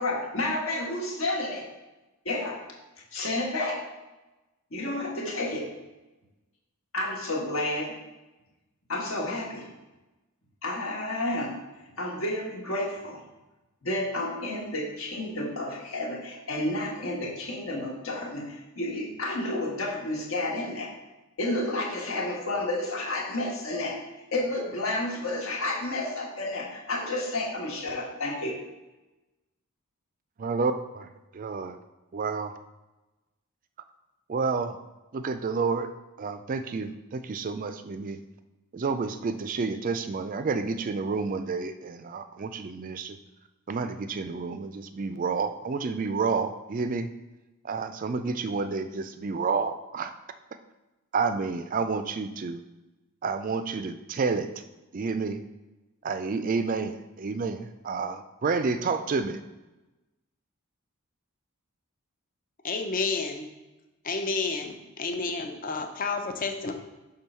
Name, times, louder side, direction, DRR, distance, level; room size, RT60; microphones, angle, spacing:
voice 1, 0.0-1.7 2.2-2.6 3.1-3.8 4.7-5.7 6.9-8.0 8.9-9.7 10.6-11.6 12.0-13.2 13.8-20.9 21.4-24.0 24.3-28.6, left 1 dB, 65° left, -2 dB, 1.5 m, -31 dB
voice 2, 30.4-31.8 32.1-32.5 34.3-34.8 35.1-35.9 36.2-38.2 38.7-43.2 43.7-47.1 47.6-50.1 51.1-52.6 53.2-54.5 54.9-55.4 56.0-59.4, right 4 dB, 35° right, 10 dB, 0.3 m, -30 dB
voice 3, 62.6-63.5 64.0-66.7, left 4 dB, 40° left, 6 dB, 0.6 m, -30 dB
6.2 x 3.7 x 5.5 m, 1.1 s
head